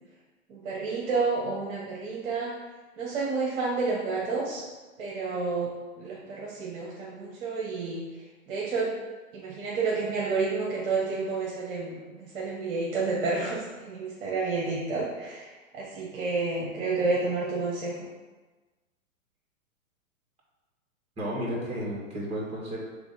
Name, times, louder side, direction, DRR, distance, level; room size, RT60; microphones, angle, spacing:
voice 1, 0.5-2.5 3.0-4.6 5.0-5.7 6.0-8.0 8.5-8.9 9.3-15.5 15.7-17.9, right 4 dB, 40° right, -4 dB, 1.6 m, -30 dB
voice 2, 21.2-22.8, equal, 15° right, -4 dB, 2.2 m, -32 dB
5.9 x 3.7 x 5.4 m, 1.2 s
figure-of-eight pair, 110°, 42 cm